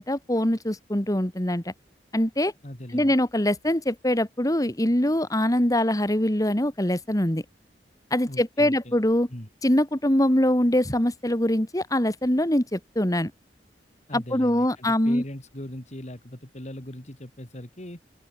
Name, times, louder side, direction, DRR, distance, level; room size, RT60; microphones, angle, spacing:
voice 1, 0.0-1.7 2.1-2.5 2.9-7.4 8.1-9.3 9.6-13.3 14.1-15.2, left 1 dB, 20° left, 2.4 m, -23 dB
voice 2, 2.6-3.1 8.3-9.0 9.3-9.5 14.1-18.0, left 1 dB, 40° left, 3.1 m, -39 dB
open air
head